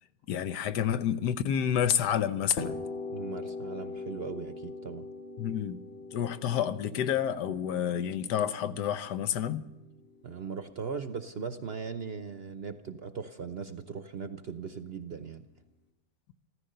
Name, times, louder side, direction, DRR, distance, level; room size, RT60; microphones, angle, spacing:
voice 1, 0.3-2.8 5.4-5.8 6.1-9.7, left 9 dB, 85° left, 1.4 m, -29 dB
sound 1, 2.6-10.3, left 3 dB, 60° left, 2.6 m, -41 dB
voice 2, 3.1-5.1 10.2-15.4, right 6 dB, 50° right, 0.8 m, -39 dB
14.5 x 14.5 x 6.7 m
omnidirectional pair, 1.8 m